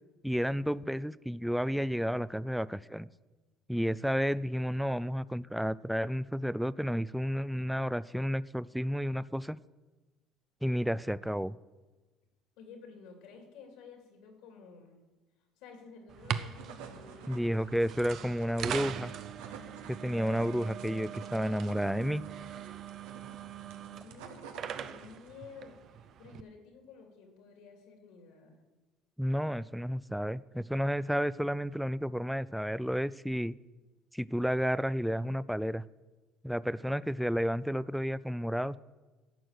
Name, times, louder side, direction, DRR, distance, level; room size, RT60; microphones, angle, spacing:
voice 1, 0.2-3.1 3.7-9.6 10.6-11.6 17.3-19.1 19.9-22.2 29.2-33.5 34.1-35.8 36.4-38.8, equal, ahead, 18 dB, 0.3 m, -31 dB
voice 2, 12.6-15.0 15.6-18.2 23.6-28.6, left 5 dB, 80° left, 3 dB, 2.8 m, -53 dB
sound 1, 16.1-26.4, right 8 dB, 55° right, 0.6 m, -41 dB
sound 2, 16.3-25.4, right 6 dB, 85° right, 1.2 m, -51 dB
11.0 x 6.2 x 8.1 m, 1.2 s
supercardioid pair, 90°, 0 cm